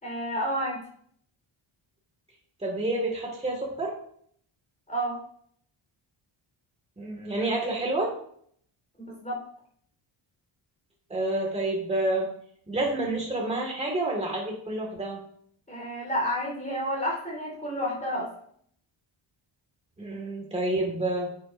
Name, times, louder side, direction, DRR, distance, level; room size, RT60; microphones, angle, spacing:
voice 1, 0.0-0.8 4.9-5.2 9.0-9.4 15.7-18.3, equal, 15° left, -3 dB, 4.0 m, -30 dB
voice 2, 2.6-4.0 7.0-8.1 11.1-12.3 12.7-15.2 20.0-21.3, right 2 dB, 15° right, -1 dB, 1.9 m, -28 dB
10.5 x 7.7 x 2.6 m, 0.63 s
wide cardioid pair, 155°, 50 cm